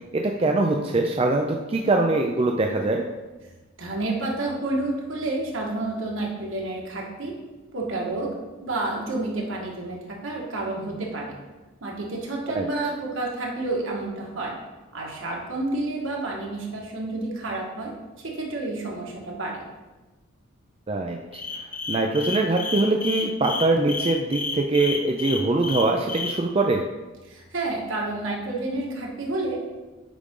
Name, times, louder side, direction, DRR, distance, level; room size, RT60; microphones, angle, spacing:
voice 1, 0.1-3.0 12.6-12.7 20.9-21.2 21.9-26.8, right 2 dB, 30° right, 2 dB, 0.4 m, -23 dB
voice 2, 3.8-7.3 7.7-8.3 8.6-10.0 10.2-11.3 11.8-14.5 14.9-17.9 18.2-19.6 27.3-29.6, right 2 dB, 70° right, -2 dB, 1.7 m, -29 dB
sound 1, 21.3-26.3, left 4 dB, 40° left, 0.9 m, -30 dB
8.5 x 5.1 x 3.7 m, 1.2 s
head